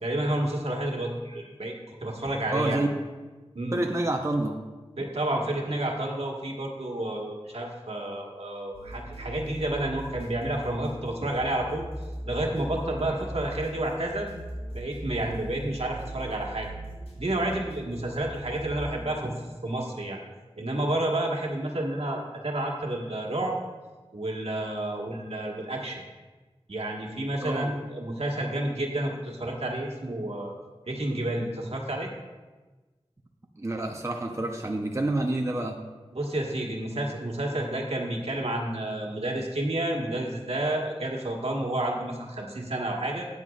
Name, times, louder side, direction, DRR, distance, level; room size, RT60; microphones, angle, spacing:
voice 1, 0.0-1.7 2.0-2.8 3.5-3.8 5.0-11.9 12.2-14.3 14.7-16.7 17.2-19.3 19.6-20.2 20.6-23.5 24.1-26.0 26.7-30.5 30.9-32.1 36.1-43.3, right 1 dB, 75° right, 0 dB, 1.5 m, -30 dB
voice 2, 2.5-3.0 3.7-4.6 27.4-27.7 33.6-35.8, right 1 dB, 30° right, 2 dB, 0.8 m, -28 dB
sound 1, 8.7-18.8, right 1 dB, 75° left, 3.2 m, -40 dB
13.0 x 9.4 x 2.4 m, 1.3 s
wide cardioid pair, 50°, 11 cm